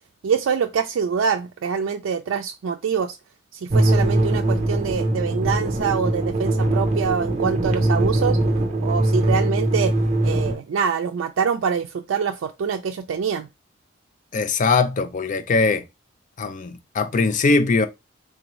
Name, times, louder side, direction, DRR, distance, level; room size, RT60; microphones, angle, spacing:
voice 1, 0.2-3.2 3.6-8.4 8.8-9.9 10.2-13.5, right 6 dB, 80° right, 0.3 m, -25 dB
sound 1, 3.7-10.5, right 1 dB, 35° right, 0.6 m, -21 dB
voice 2, 14.3-15.8 16.4-17.9, left 4 dB, 40° left, 0.4 m, -21 dB
3.8 x 2.6 x 3.0 m
head